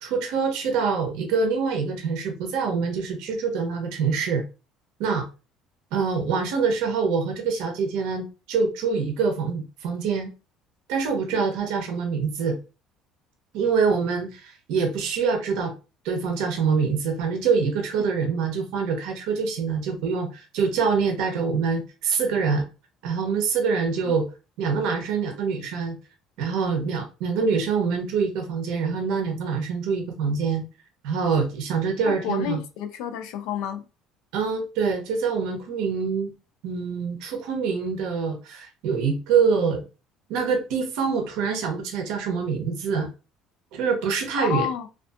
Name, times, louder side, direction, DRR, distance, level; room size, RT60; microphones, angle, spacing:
voice 1, 0.0-4.4 5.0-5.3 5.9-10.3 10.9-12.6 13.5-15.7 16.0-22.7 23.0-24.2 24.6-26.0 26.4-30.6 31.0-32.6 34.3-36.3 36.6-39.8 40.3-43.1 43.7-44.7, right 5 dB, 80° right, 0.6 m, -25 dB
voice 2, 32.1-33.8 44.4-44.9, left 9 dB, 80° left, 0.4 m, -30 dB
2.5 x 2.3 x 2.3 m
cardioid pair, 130°, 0 cm